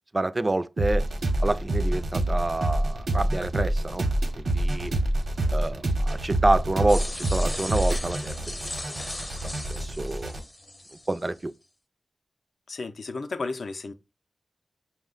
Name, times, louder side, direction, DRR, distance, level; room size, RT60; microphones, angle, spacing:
voice 1, 0.1-1.0 1.4-4.0 4.4-4.9 5.5-8.3 9.4-10.3 11.1-11.5, right 2 dB, 35° right, 0.3 m, -27 dB
sound 1, 0.8-10.4, right 1 dB, 75° right, 0.8 m, -27 dB
sound 2, 6.9-11.3, left 1 dB, 25° left, 0.5 m, -37 dB
voice 2, 12.7-13.9, left 3 dB, 75° left, 0.4 m, -33 dB
5.5 x 2.1 x 3.7 m
wide cardioid pair, 65°, 0 cm